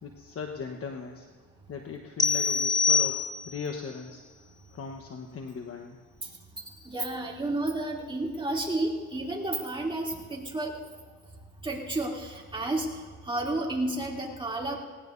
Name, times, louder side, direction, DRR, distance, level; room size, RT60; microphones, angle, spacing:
voice 1, 0.0-1.3 1.7-4.2 4.7-6.0, left 5 dB, 50° left, 3 dB, 1.2 m, -38 dB
sound 1, 2.2-3.7, left 5 dB, 15° left, 0.5 m, -25 dB
voice 2, 6.7-10.8 11.6-14.8, right 2 dB, 15° right, -2 dB, 2.9 m, -31 dB
19.5 x 18.5 x 2.7 m, 1.5 s
cardioid pair, 90°, 30 cm